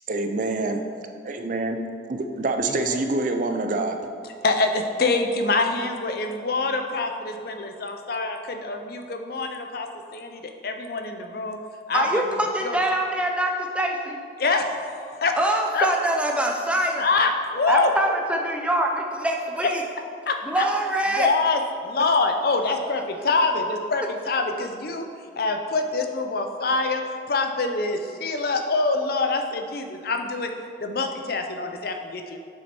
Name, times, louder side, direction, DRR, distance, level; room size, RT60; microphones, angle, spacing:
voice 1, 0.1-0.8 1.2-1.8 2.1-4.0, right 2 dB, 45° right, 6 dB, 0.5 m, -26 dB
voice 2, 2.7-3.0 4.4-11.6 11.9-12.8 14.4-15.3 15.7-15.9 17.0-17.9 20.3-20.7 21.1-25.1 25.4-27.0 27.3-30.5 30.8-32.4, left 3 dB, 60° left, 5 dB, 0.6 m, -25 dB
voice 3, 11.9-14.2 15.4-17.0 17.7-18.9 19.2-19.8 20.5-21.3, right 1 dB, 5° right, 1 dB, 0.7 m, -24 dB
7.2 x 6.2 x 4.4 m, 2.2 s
head